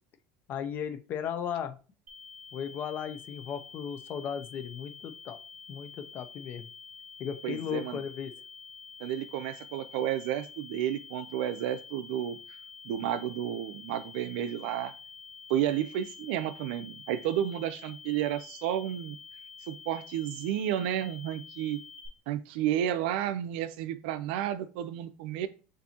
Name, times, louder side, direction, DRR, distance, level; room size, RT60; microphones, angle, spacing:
voice 1, 0.5-1.8 2.5-5.4 5.7-6.7 7.2-8.3, left 8 dB, 40° left, 0.6 m, -36 dB
sound 1, 2.1-22.1, left 5 dB, 30° right, 1.2 m, -48 dB
voice 2, 7.4-8.0 9.0-12.4 12.8-14.9 15.5-19.2 19.7-21.8 22.3-25.5, right 11 dB, 80° right, 0.5 m, -31 dB
6.9 x 2.7 x 2.8 m
cardioid pair, 150°, 5 cm